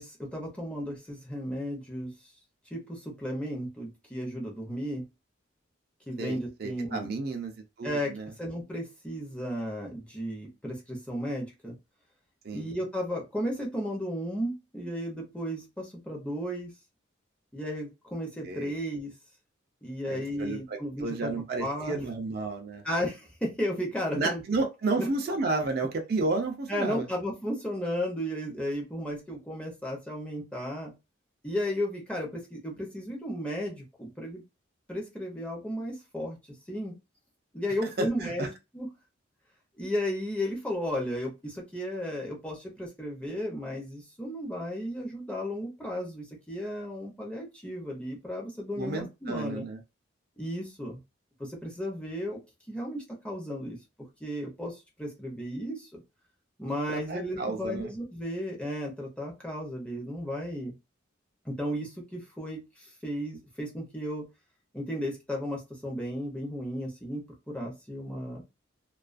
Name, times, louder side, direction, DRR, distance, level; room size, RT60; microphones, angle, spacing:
voice 1, 0.0-2.1 2.7-5.0 6.1-7.1 7.8-11.7 12.5-16.7 17.5-19.1 19.8-21.3 21.6-22.0 22.8-24.4 25.0-25.1 26.7-30.9 31.4-34.4 34.9-36.4 36.7-37.0 37.5-38.9 39.8-49.6 50.4-51.0 51.4-52.4 52.7-53.8 54.2-56.0 56.6-60.7 61.4-64.3 64.7-68.4, equal, 5° left, 0.6 m, -34 dB
voice 2, 6.2-7.5 7.8-8.3 12.4-12.7 18.4-18.7 20.1-22.8 24.1-27.0 37.8-38.5 48.8-49.8 56.9-57.9, right 3 dB, 50° right, 0.4 m, -32 dB
2.3 x 2.3 x 2.4 m
head